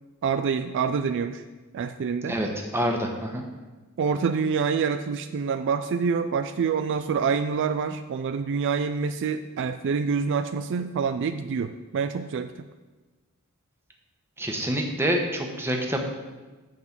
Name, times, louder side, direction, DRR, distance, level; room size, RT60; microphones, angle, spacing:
voice 1, 0.2-1.4 1.7-2.4 4.0-12.5, right 5 dB, 55° right, 9 dB, 0.3 m, -26 dB
voice 2, 2.3-3.4 14.4-16.0, equal, 10° right, 1 dB, 1.0 m, -27 dB
9.6 x 3.9 x 7.2 m, 1.2 s
head